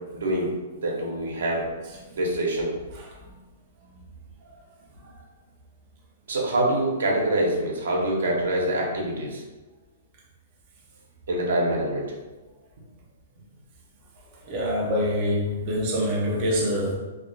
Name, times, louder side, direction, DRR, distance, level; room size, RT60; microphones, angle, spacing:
voice 1, 0.0-1.7 2.1-2.7 6.3-9.4 11.3-12.1, right 1 dB, 90° right, -2 dB, 0.7 m, -25 dB
voice 2, 14.4-17.0, equal, 30° right, -3 dB, 0.4 m, -25 dB
2.3 x 2.1 x 2.7 m, 1.2 s
hypercardioid pair, 170°, 0 cm